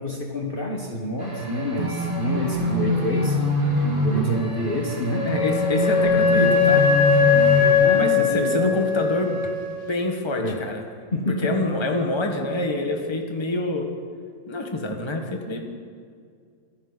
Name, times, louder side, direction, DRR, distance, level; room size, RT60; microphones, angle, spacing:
voice 1, 0.0-3.4 4.0-5.3 7.8-8.8 10.4-10.6 11.1-11.5, left 1 dB, 40° left, 0 dB, 1.4 m, -27 dB
sound 1, 1.2-7.7, equal, 35° right, 2.9 m, -24 dB
Wind instrument woodwind instrument, 5.1-9.8, left 6 dB, 80° left, 3.8 m, -20 dB
voice 2, 5.2-6.8 7.9-9.5 9.9-10.9 11.4-13.9 14.5-15.7, left 2 dB, 20° left, 3 dB, 1.3 m, -26 dB
25.5 x 10.5 x 4.0 m, 2.2 s
omnidirectional pair, 1.6 m